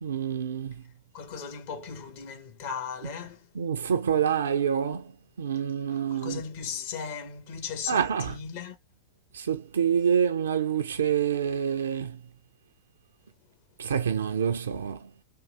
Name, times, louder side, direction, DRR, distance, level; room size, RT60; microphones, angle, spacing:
voice 1, 0.0-0.7 3.6-5.1 5.4-6.4 7.9-8.3 9.3-12.2 13.8-15.0, right 8 dB, 70° right, 0.3 m, -27 dB
voice 2, 1.1-3.5 5.9-8.8, left 6 dB, 50° left, 1.1 m, -37 dB
3.6 x 2.6 x 2.2 m
figure-of-eight pair, 90°, 0 cm